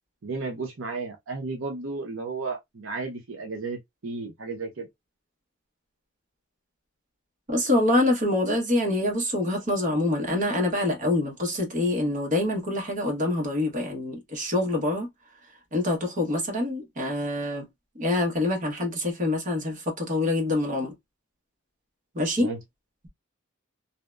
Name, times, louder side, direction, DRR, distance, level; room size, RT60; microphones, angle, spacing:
voice 1, 0.2-3.8 4.0-4.9 22.4-22.6, right 3 dB, 70° right, 0.6 m, -33 dB
voice 2, 7.5-15.1 15.7-17.7 18.0-20.9 22.1-22.5, left 1 dB, 40° right, 0.9 m, -25 dB
2.7 x 2.0 x 2.2 m
head